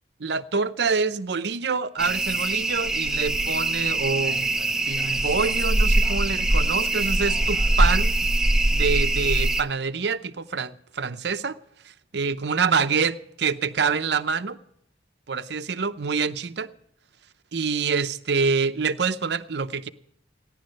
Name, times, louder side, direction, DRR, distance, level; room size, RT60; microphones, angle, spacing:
voice 1, 0.2-4.5 4.9-8.1 8.7-11.6 12.1-14.6 15.3-16.7 17.5-19.9, right 5 dB, 65° right, 11 dB, 0.6 m, -26 dB
sound 1, 2.0-9.6, right 2 dB, 5° right, 0.6 m, -23 dB
16.5 x 10.5 x 5.3 m, 0.76 s
head